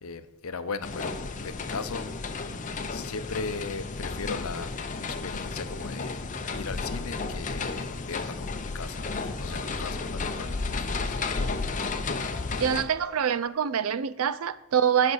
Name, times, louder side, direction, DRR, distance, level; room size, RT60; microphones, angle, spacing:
voice 1, 0.0-1.2 1.4-2.1 2.3-2.5 2.9-4.7 5.0-6.2 6.5-9.1 9.4-11.2, left 4 dB, 70° left, 0.7 m, -37 dB
sound 1, 0.8-12.8, left 3 dB, 35° left, 0.7 m, -33 dB
sound 2, 6.7-13.5, left 1 dB, 40° right, 2.8 m, -49 dB
voice 2, 12.6-15.1, right 8 dB, 70° right, 0.5 m, -25 dB
9.6 x 5.2 x 7.9 m
head